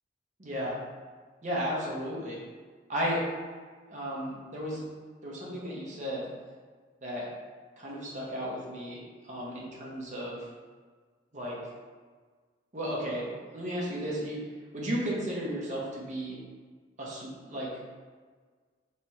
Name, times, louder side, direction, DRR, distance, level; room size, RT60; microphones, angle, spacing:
voice 1, 0.4-0.7 1.4-2.4 2.9-3.2 3.9-4.8 5.2-6.3 7.0-7.2 7.8-9.0 9.2-10.5 11.3-11.6 12.7-14.4 14.7-16.4 17.0-17.7, equal, 40° right, -5 dB, 1.0 m, -34 dB
3.3 x 3.0 x 4.5 m, 1.5 s
head